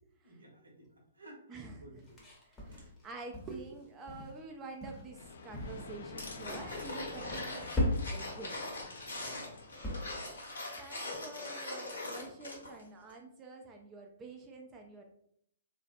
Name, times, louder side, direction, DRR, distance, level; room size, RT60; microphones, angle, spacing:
voice 1, 0.2-0.9 1.1-2.3 2.7-2.9 9.1-10.0, right 1 dB, 80° right, -1 dB, 0.8 m, -55 dB
voice 2, 1.5-2.0 2.5-8.6 10.8-15.1, right 3 dB, 20° right, 2 dB, 0.3 m, -48 dB
sound 1, 2.0-3.8 4.1-4.4 4.8-5.1 5.5-6.1 6.3-6.7 7.2-8.3 8.7-8.9 9.2-9.9, left 1 dB, 15° left, 0.7 m, -37 dB
sound 2, 5.1-10.8, left 4 dB, 60° left, 0.3 m, -49 dB
sound 3, 6.2-12.8 13.1-13.2, left 2 dB, 80° left, 0.9 m, -42 dB
2.5 x 2.1 x 2.5 m, 0.69 s
figure-of-eight pair, 120°, 0 cm